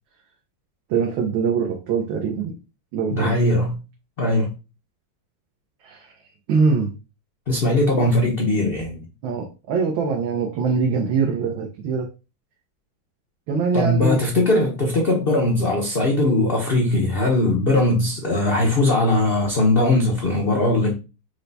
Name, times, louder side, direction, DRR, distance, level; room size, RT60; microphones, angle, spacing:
voice 1, 0.9-2.5 2.9-3.3 5.8-6.1 6.5-6.9 8.0-8.1 9.2-12.1 13.5-14.3, right 5 dB, 85° right, 1.5 m, -23 dB
voice 2, 3.1-3.8 4.2-4.6 7.5-9.0 13.7-20.9, left 2 dB, 60° left, 0.5 m, -20 dB
4.5 x 2.2 x 3.9 m
omnidirectional pair, 2.1 m